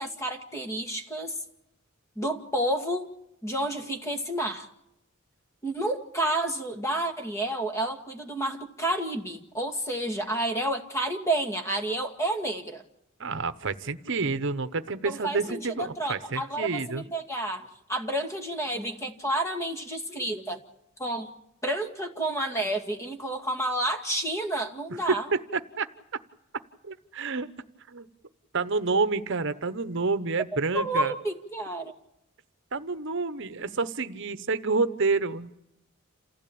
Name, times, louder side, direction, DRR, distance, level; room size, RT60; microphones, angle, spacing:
voice 1, 0.0-1.4 2.2-3.1 3.4-4.7 5.6-12.8 15.0-20.6 21.0-21.3 21.6-25.3 30.5-31.9, right 1 dB, 15° left, 5 dB, 2.1 m, -30 dB
voice 2, 13.2-17.0 25.1-25.9 26.8-27.5 27.9-28.1 28.5-31.1 32.7-35.5, right 4 dB, 60° right, 11 dB, 1.0 m, -28 dB
28.5 x 16.0 x 8.7 m, 0.85 s
head